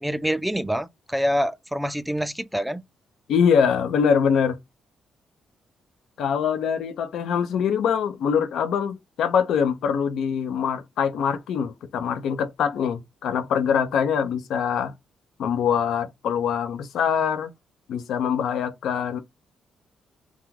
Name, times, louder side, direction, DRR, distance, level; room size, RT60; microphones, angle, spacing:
voice 1, 0.0-2.8, equal, 5° right, 0.3 m, -26 dB
voice 2, 3.3-4.6 6.2-14.9 15.4-17.5 17.9-19.2, left 7 dB, 75° left, 0.4 m, -23 dB
2.4 x 2.3 x 3.1 m
supercardioid pair, 55°, 0 cm